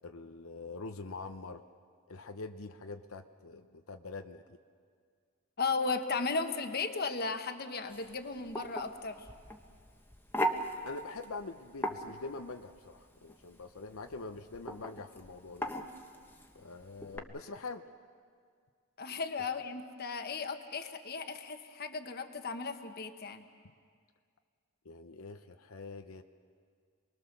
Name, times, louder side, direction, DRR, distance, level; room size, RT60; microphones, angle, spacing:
voice 1, 0.0-1.6 2.1-4.6 10.8-15.7 16.5-17.8 24.8-26.2, left 3 dB, 90° left, 7 dB, 0.8 m, -44 dB
voice 2, 5.6-9.2 19.0-23.5, left 4 dB, 50° left, 7 dB, 1.3 m, -35 dB
sound 1, 7.9-17.2, equal, 10° left, 1.2 m, -39 dB
28.0 x 21.0 x 6.8 m, 2.1 s
head